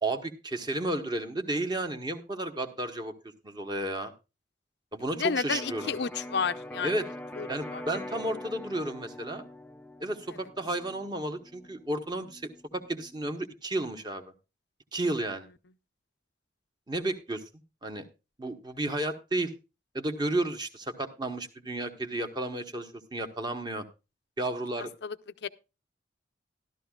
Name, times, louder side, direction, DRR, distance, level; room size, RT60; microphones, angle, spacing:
voice 1, 0.0-3.1 3.4-4.1 4.9-5.9 6.8-7.1 7.5-9.5 10.0-14.3 14.9-15.5 16.9-17.4 17.8-18.1 18.4-19.5 19.9-23.8 24.4-24.9, right 1 dB, 25° right, 1.1 m, -32 dB
voice 2, 5.1-6.9 7.4-7.8 10.3-10.4 25.0-25.2 25.4-25.5, left 6 dB, 60° left, 0.6 m, -31 dB
Electric guitar, 5.5-13.3, left 1 dB, 10° left, 0.4 m, -44 dB
13.5 x 12.5 x 2.3 m
head